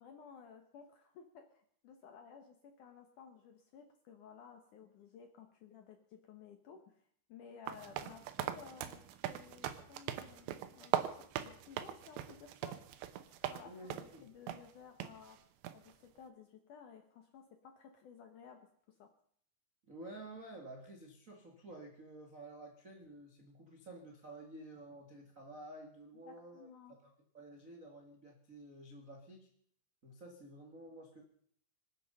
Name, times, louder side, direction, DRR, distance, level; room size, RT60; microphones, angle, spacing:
voice 1, 0.0-7.0 7.3-13.1 13.4-15.4 15.7-19.1 26.3-27.0, left 6 dB, 70° left, 6 dB, 2.0 m, -56 dB
sound 1, 7.7-13.6 13.9-14.2 14.5-14.6 15.0-15.1 15.6-15.9, right 12 dB, 85° right, 3.2 m, -40 dB
voice 2, 13.6-14.3 19.8-26.7 27.0-29.5 30.0-31.2, right 1 dB, 55° right, 1 dB, 0.8 m, -51 dB
25.5 x 9.3 x 5.5 m, 0.64 s
omnidirectional pair, 5.0 m